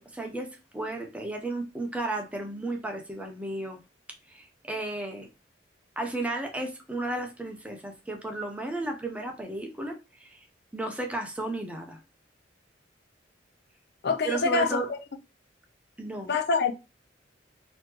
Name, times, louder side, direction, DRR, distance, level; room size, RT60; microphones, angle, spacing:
voice 1, 0.0-3.8 4.3-5.3 6.0-10.4 10.7-12.0 14.2-14.9 16.0-16.4, right 2 dB, 5° right, 0.8 m, -34 dB
voice 2, 14.0-15.0 16.3-16.7, left 4 dB, 60° left, 0.5 m, -25 dB
4.0 x 2.9 x 3.0 m
head